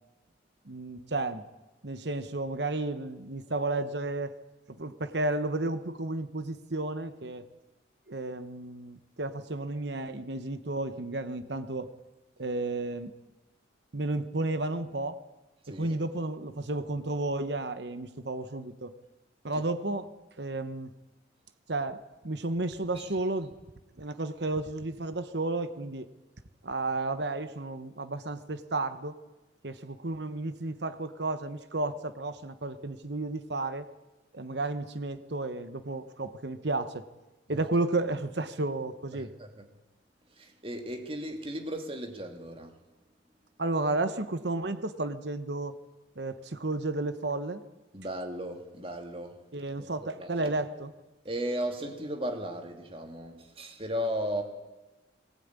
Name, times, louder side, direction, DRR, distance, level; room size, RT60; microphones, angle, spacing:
voice 1, 0.6-1.5 1.8-4.3 4.7-7.5 8.1-11.9 12.4-13.1 13.9-15.2 15.7-18.9 19.4-20.1 20.4-20.9 21.7-23.5 24.0-26.1 26.6-29.2 29.6-33.9 34.3-37.1 37.5-39.3 43.6-45.8 46.2-47.6 49.5-50.9, right 2 dB, 65° right, 11 dB, 1.2 m, -32 dB
voice 2, 39.1-39.6 40.3-42.7 47.9-49.4 49.8-50.5 51.2-54.4, equal, 30° right, 5 dB, 2.8 m, -36 dB
22.0 x 19.5 x 9.7 m, 1.1 s
head